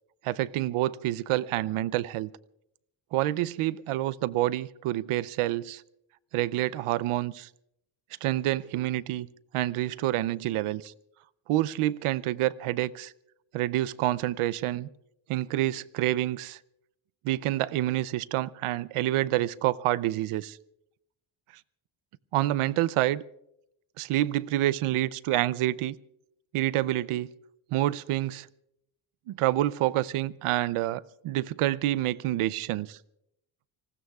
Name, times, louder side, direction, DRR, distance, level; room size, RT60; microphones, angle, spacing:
voice 1, 0.2-2.3 3.1-5.8 6.3-7.5 8.2-9.3 9.5-10.9 11.5-13.1 13.5-14.9 15.3-16.6 17.2-20.6 22.3-23.2 24.0-26.0 26.5-27.3 27.7-28.5 29.3-33.0, right 15 dB, 90° right, 19 dB, 0.6 m, -28 dB
30.0 x 19.5 x 2.3 m, 0.81 s
cardioid pair, 100°, 49 cm